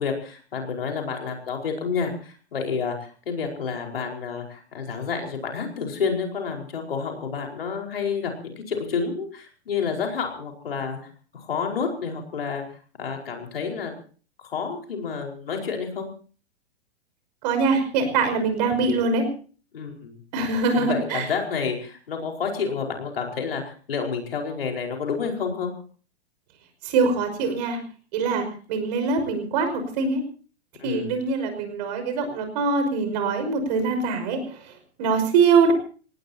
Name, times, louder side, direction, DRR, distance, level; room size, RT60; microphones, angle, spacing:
voice 1, 0.0-14.0 14.4-16.1 19.7-20.2 20.7-25.7 30.8-31.1, left 5 dB, 60° left, 2 dB, 4.9 m, -29 dB
voice 2, 17.4-19.3 20.3-21.2 26.8-27.8 28.1-30.2 30.8-34.6 35.0-35.7, right 4 dB, 40° right, 7 dB, 5.7 m, -23 dB
27.0 x 18.5 x 2.9 m, 0.40 s
figure-of-eight pair, 105°, 33 cm